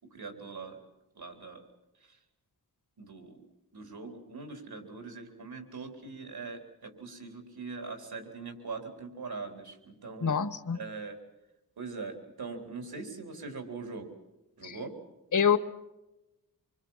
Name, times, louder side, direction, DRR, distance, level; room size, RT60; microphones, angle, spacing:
voice 1, 0.0-0.8 1.1-1.6 2.0-2.2 3.0-3.4 3.7-10.3 10.7-11.2 11.8-14.1 14.6-14.9, right 4 dB, 85° right, 4 dB, 3.9 m, -42 dB
voice 2, 10.2-10.8 14.6-14.8 15.3-15.6, left 7 dB, 55° left, 12 dB, 1.2 m, -26 dB
26.0 x 24.5 x 5.7 m, 0.96 s
wide cardioid pair, 90°, 36 cm